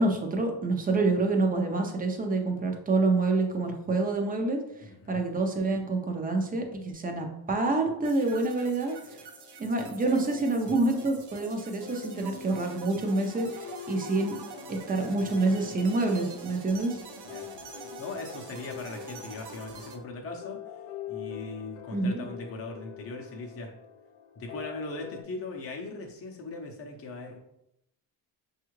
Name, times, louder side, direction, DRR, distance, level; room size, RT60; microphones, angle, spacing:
voice 1, 0.0-4.6 5.1-9.0 9.6-14.4 14.7-17.0 21.9-22.2, right 2 dB, 20° right, 3 dB, 0.6 m, -27 dB
voice 2, 4.8-5.2 17.3-20.6 21.1-23.7 24.4-27.4, left 3 dB, 35° left, 0 dB, 0.6 m, -39 dB
sound 1, 8.0-20.0, right 6 dB, 70° right, 0.6 m, -46 dB
sound 2, 9.1-25.2, left 9 dB, 80° left, 0.6 m, -45 dB
5.3 x 2.4 x 3.0 m, 0.82 s
cardioid pair, 120°, 43 cm